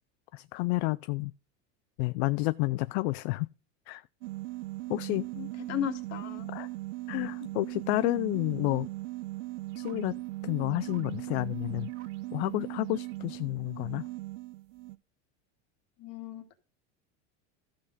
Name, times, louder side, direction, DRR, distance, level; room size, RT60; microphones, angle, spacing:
voice 1, 0.3-1.3 2.0-3.5 3.9-4.0 4.9-5.3 6.5-6.7 7.1-8.9 9.8-11.9 12.3-14.1, left 21 dB, 65° left, 0.5 m, -30 dB
sound 1, 4.2-15.0, right 19 dB, 85° right, 0.7 m, -39 dB
voice 2, 5.4-6.5 16.0-16.4, left 10 dB, 45° left, 2.3 m, -35 dB
14.0 x 6.2 x 4.0 m
supercardioid pair, 135°, 36 cm